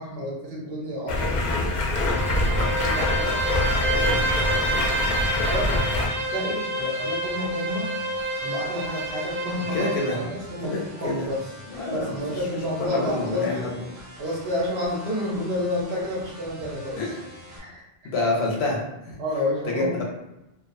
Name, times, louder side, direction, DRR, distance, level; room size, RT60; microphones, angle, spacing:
voice 1, 0.0-1.8 2.8-3.4 4.5-5.7 6.0-7.9 8.4-11.4 11.9-13.7 14.2-17.0 17.5-17.8 19.2-20.0, left 1 dB, 70° right, -3 dB, 0.9 m, -30 dB
Stream, 1.1-6.1, left 2 dB, 55° left, 0.5 m, -24 dB
Bowed string instrument, 1.9-10.2, right 1 dB, 5° right, 0.6 m, -28 dB
sound 1, 3.3-17.6, equal, 45° right, 0.6 m, -45 dB
voice 2, 9.6-10.2 10.6-11.4 11.7-13.8 17.0-17.1 18.0-19.2 19.7-20.0, left 2 dB, 85° left, -2 dB, 0.9 m, -28 dB
2.4 x 2.2 x 2.5 m, 0.93 s
omnidirectional pair, 1.1 m